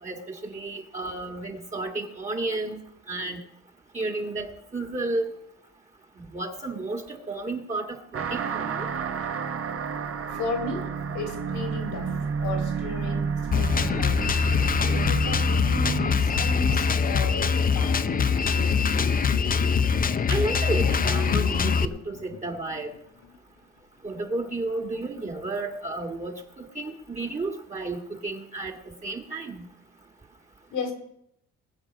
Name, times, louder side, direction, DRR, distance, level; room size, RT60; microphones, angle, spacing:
voice 1, 0.0-2.8 3.1-3.4 3.9-5.3 6.3-8.9 20.3-22.9 24.0-29.6, right 2 dB, 25° right, 2 dB, 1.7 m, -32 dB
sound 1, 8.1-19.1, right 6 dB, 50° right, 1.3 m, -32 dB
voice 2, 10.3-12.1 12.4-14.2 14.8-18.8 30.7-30.9, left 2 dB, 80° left, 5 dB, 3.1 m, -35 dB
Drum kit, 13.5-21.8, left 6 dB, 30° left, 0.6 m, -23 dB
Sink (filling or washing), 16.1-23.4, left 7 dB, 60° left, 1.1 m, -37 dB
20.5 x 7.3 x 5.3 m, 0.76 s
cardioid pair, 90°, 30 cm